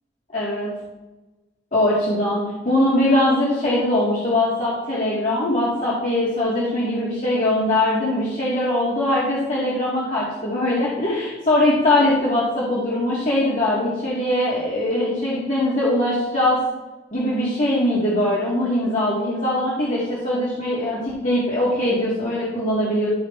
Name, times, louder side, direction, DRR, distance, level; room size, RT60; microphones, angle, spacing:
voice 1, 0.3-0.7 1.7-16.6 17.1-23.1, left 1 dB, 45° left, -8 dB, 2.1 m, -21 dB
12.0 x 5.6 x 3.3 m, 1.1 s
head